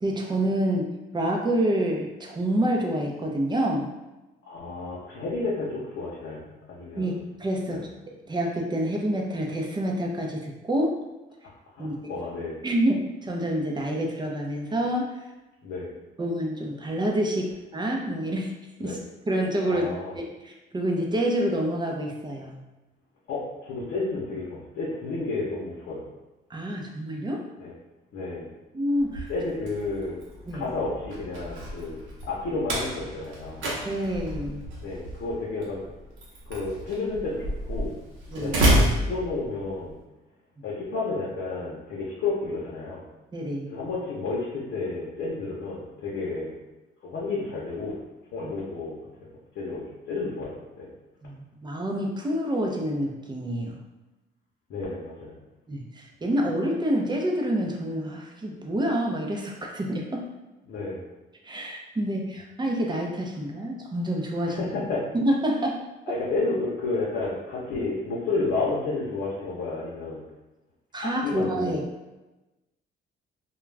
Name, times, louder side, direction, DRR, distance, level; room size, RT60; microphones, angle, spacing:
voice 1, 0.0-3.9 7.0-7.1 7.4-11.0 11.8-12.0 12.6-15.1 16.2-19.0 19.3-22.6 26.5-27.5 28.7-29.3 30.5-30.6 33.8-34.6 38.3-38.5 40.6-40.7 43.3-43.7 48.4-48.5 51.2-53.8 55.7-60.3 61.4-64.6 65.1-65.8 66.1-66.2 70.9-71.8, right 1 dB, 20° right, 0 dB, 0.5 m, -27 dB
voice 2, 4.4-7.1 7.7-7.8 11.8-12.6 15.6-15.9 18.8-19.0 19.7-20.1 23.3-26.0 27.6-27.7 28.1-28.5 29.3-30.2 30.5-32.0 32.3-33.7 34.8-35.9 36.5-38.0 38.3-40.0 40.6-43.0 43.7-46.5 47.0-48.0 48.3-49.0 49.6-50.9 54.7-55.3 60.7-61.0 64.5-65.0 66.1-70.2 71.0-71.7, left 3 dB, 75° left, -6 dB, 0.8 m, -31 dB
Slam, 29.0-39.9, right 1 dB, 85° right, 0.8 m, -30 dB
2.4 x 2.2 x 3.2 m, 1.1 s
cardioid pair, 90°, 20 cm